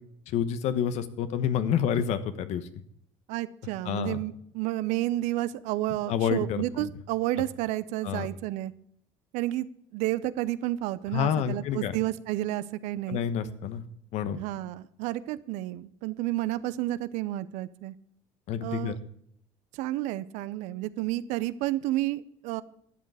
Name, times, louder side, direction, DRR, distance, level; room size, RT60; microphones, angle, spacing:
voice 1, 0.3-2.7 3.8-4.2 6.1-6.9 8.0-8.3 11.1-11.9 13.1-13.9 14.1-14.4 18.5-18.9, left 8 dB, 65° left, 12 dB, 1.1 m, -28 dB
voice 2, 3.3-8.7 9.3-9.7 9.9-13.2 14.3-17.9 18.6-19.0 19.7-22.6, right 15 dB, 75° right, 16 dB, 0.7 m, -31 dB
12.5 x 8.0 x 4.8 m, 0.70 s
supercardioid pair, 90°, 12 cm